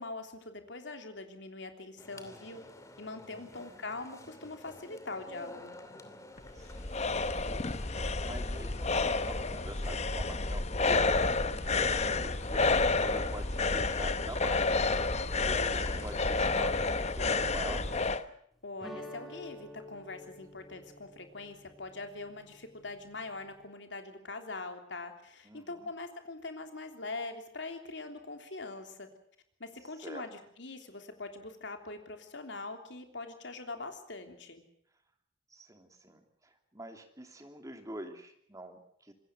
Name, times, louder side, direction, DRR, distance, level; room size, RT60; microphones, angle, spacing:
voice 1, 0.0-2.6 3.0-5.8 15.3-15.8 18.6-29.1 29.6-34.6, left 3 dB, 65° left, 6 dB, 3.3 m, -43 dB
sound 1, 2.0-18.0, left 1 dB, 15° left, 2.6 m, -53 dB
voice 2, 3.3-3.8 6.5-11.1 11.7-14.8 15.4-17.8 25.4-25.9 30.0-30.3 35.5-39.1, right 1 dB, 15° right, 5 dB, 2.9 m, -46 dB
sound 2, 6.4-18.2, left 3 dB, 35° left, 0.9 m, -30 dB
sound 3, 18.8-23.7, equal, ahead, 4.5 m, -50 dB
26.0 x 21.0 x 6.2 m, 0.67 s
head